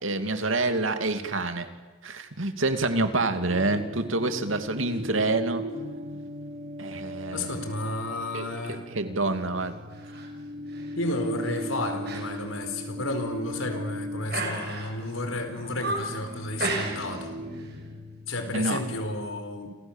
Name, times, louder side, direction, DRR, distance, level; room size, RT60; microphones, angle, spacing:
voice 1, 0.0-1.7 2.0-5.7 6.8-7.6 8.3-9.8 18.5-18.8, right 2 dB, 85° right, 8 dB, 2.6 m, -27 dB
sound 1, 3.5-18.6, equal, 35° right, 5.8 m, -39 dB
voice 2, 7.3-8.8 11.0-17.3 18.3-19.8, left 2 dB, 90° left, 7 dB, 4.5 m, -32 dB
sound 2, 9.9-10.3 10.7-10.9 11.4-11.6 12.0-12.3 12.6-12.7 13.3-13.8 14.3-15.1 15.5-16.2 16.6-17.3 17.5-17.8, right 2 dB, 55° right, 5.9 m, -33 dB
29.5 x 27.0 x 7.3 m, 1.2 s
head